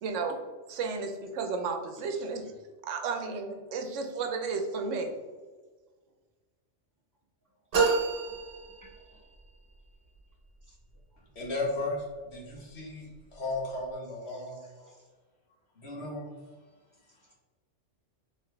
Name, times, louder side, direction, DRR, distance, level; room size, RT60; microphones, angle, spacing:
voice 1, 0.0-0.4 0.7-2.5 2.8-5.1, right 4 dB, 90° right, 5 dB, 1.0 m, -33 dB
sound 1, 7.7-9.4, right 4 dB, 55° right, 1.0 m, -28 dB
voice 2, 8.8-9.2 10.7-10.8 12.6-12.7 14.3-15.0, equal, 20° right, -3 dB, 0.7 m, -60 dB
voice 3, 11.3-14.6 15.8-16.3, left 2 dB, 60° left, -3 dB, 1.4 m, -35 dB
3.9 x 3.2 x 3.3 m, 1.4 s
omnidirectional pair, 1.2 m